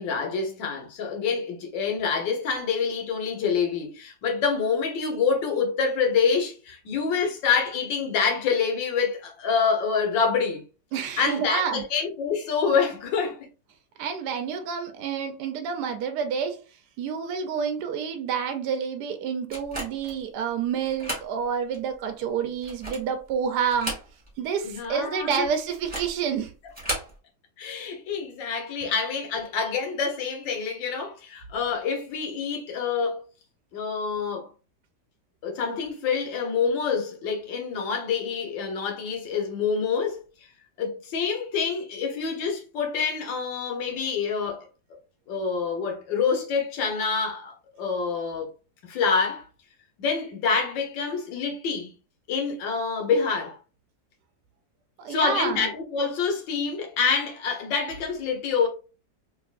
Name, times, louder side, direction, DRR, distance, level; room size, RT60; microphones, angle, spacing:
voice 1, 0.0-10.6 11.2-13.4 24.6-25.5 27.6-33.2 33.7-34.5 35.4-40.2 40.8-44.7 45.3-48.5 48.8-49.4 50.0-51.9 52.3-53.6 55.1-58.7, left 5 dB, 85° left, 1.7 m, -26 dB
voice 2, 10.9-11.8 14.0-16.6 17.0-24.0 24.4-26.5 28.8-28.9 55.0-55.7, right 7 dB, 70° right, 1.1 m, -28 dB
sound 1, 19.5-20.2 20.8-21.3 21.7-21.8 22.5-23.2 23.6-24.4 24.7-24.8 25.7-26.2 26.7-27.1, right 1 dB, 5° right, 1.7 m, -34 dB
3.5 x 3.2 x 2.4 m
omnidirectional pair, 1.9 m